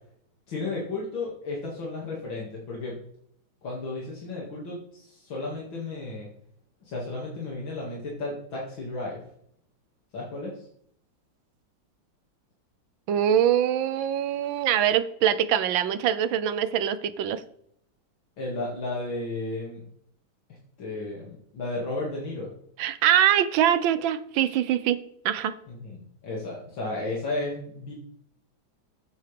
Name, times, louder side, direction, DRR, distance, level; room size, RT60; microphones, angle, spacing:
voice 1, 0.5-3.0 3.6-6.3 6.8-9.2 10.1-10.7 18.4-19.8 20.8-22.5 25.7-27.9, left 2 dB, 80° left, -4 dB, 3.0 m, -33 dB
voice 2, 13.1-17.4 22.8-25.0 25.2-25.5, right 10 dB, 85° right, 13 dB, 1.5 m, -23 dB
13.5 x 9.1 x 3.4 m, 0.68 s
omnidirectional pair, 2.1 m